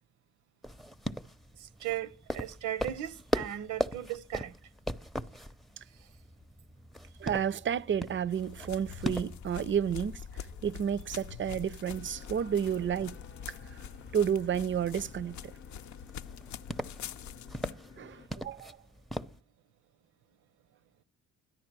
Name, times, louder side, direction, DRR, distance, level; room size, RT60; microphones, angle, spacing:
sound 1, 0.6-19.4, equal, ahead, 0.6 m, -41 dB
voice 1, 1.6-4.6 6.0-6.1, right 12 dB, 75° right, 0.7 m, -37 dB
voice 2, 7.2-13.2 14.1-15.5 18.0-18.8, right 8 dB, 40° right, 0.5 m, -31 dB
sound 2, 8.3-17.7, left 8 dB, 70° left, 0.6 m, -45 dB
sound 3, 11.9-18.3, left 6 dB, 35° left, 0.7 m, -54 dB
13.0 x 10.5 x 5.9 m
cardioid pair, 90°, 30 cm